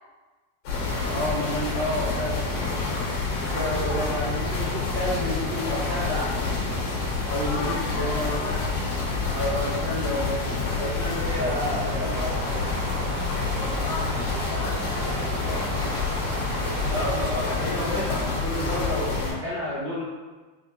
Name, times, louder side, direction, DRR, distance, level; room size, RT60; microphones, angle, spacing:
sound 1, 0.6-19.3, left 3 dB, 65° left, 2.1 m, -28 dB
voice 1, 1.0-2.4 3.4-6.5 7.3-8.3 9.3-10.4 10.8-12.7 16.9-20.0, left 1 dB, 75° right, -10 dB, 1.7 m, -30 dB
voice 2, 7.4-8.7 13.5-15.8, left 2 dB, 80° left, -4 dB, 2.4 m, -36 dB
sound 2, 11.2-17.7, right 2 dB, 90° right, 2.9 m, -36 dB
6.2 x 2.4 x 2.8 m, 1.3 s
omnidirectional pair, 4.6 m